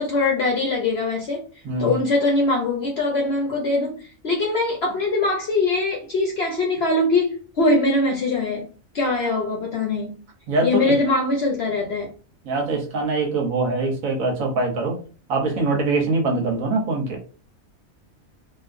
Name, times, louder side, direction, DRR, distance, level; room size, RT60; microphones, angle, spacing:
voice 1, 0.0-1.5 1.8-8.7 8.9-10.2 10.6-12.1, left 2 dB, 55° left, 0.8 m, -22 dB
voice 2, 1.6-2.0 10.5-10.9 12.4-15.0 15.3-17.2, right 3 dB, 75° right, 1.4 m, -23 dB
3.8 x 2.5 x 2.5 m
omnidirectional pair, 1.4 m